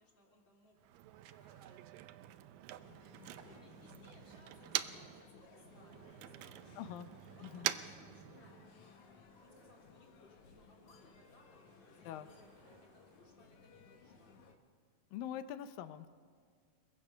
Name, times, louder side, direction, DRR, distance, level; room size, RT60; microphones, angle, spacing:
voice 1, 0.0-1.8 2.5-14.4, left 2 dB, 35° left, -1 dB, 3.8 m, -66 dB
Motor vehicle (road), 0.8-5.2 5.5-8.8, right 14 dB, 80° right, 2.3 m, -44 dB
sound 1, 1.2-2.3 3.1-4.1 4.9-13.6, right 2 dB, 55° right, 6.1 m, -70 dB
sound 2, 2.8-14.5, left 4 dB, 60° left, 3.0 m, -61 dB
voice 2, 6.8-7.1 7.4-7.7 12.0-12.3 15.1-16.1, left 10 dB, 80° left, 11 dB, 2.4 m, -44 dB
28.5 x 22.0 x 5.6 m, 2.1 s
omnidirectional pair, 4.1 m